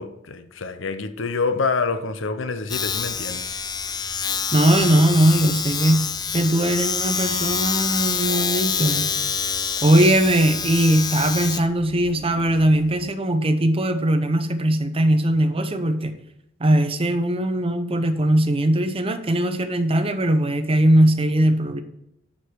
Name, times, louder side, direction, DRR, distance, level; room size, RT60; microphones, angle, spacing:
voice 1, 0.0-3.4, left 4 dB, 75° left, 0.7 m, -26 dB
Domestic sounds home sounds, 2.7-13.1, left 6 dB, 20° left, 0.4 m, -26 dB
voice 2, 4.5-6.1 6.3-9.1 9.8-16.2 16.6-21.8, right 1 dB, 30° right, 0.7 m, -20 dB
7.2 x 6.8 x 4.7 m
head